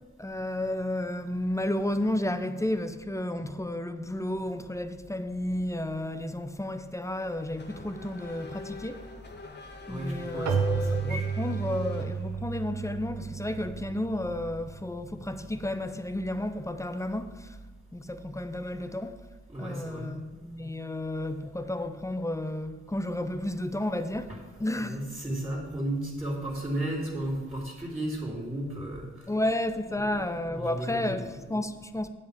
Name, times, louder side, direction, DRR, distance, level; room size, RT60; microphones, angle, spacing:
voice 1, 0.2-9.0 9.9-17.5 17.9-19.2 19.6-24.3 24.6-25.0 29.3-32.1, left 1 dB, 10° left, 0.9 m, -32 dB
Race car auto racing / Accelerating revving vroom, 7.1-12.6, left 3 dB, 35° left, 1.5 m, -45 dB
voice 2, 9.9-11.3 19.5-20.1 24.3-24.4 24.7-29.1 30.0-30.2 30.5-31.3, right 1 dB, 5° right, 3.3 m, -34 dB
Keyboard (musical), 10.5-15.0, right 6 dB, 55° right, 1.4 m, -32 dB
8.4 x 7.8 x 5.1 m
hypercardioid pair, 45°, 32 cm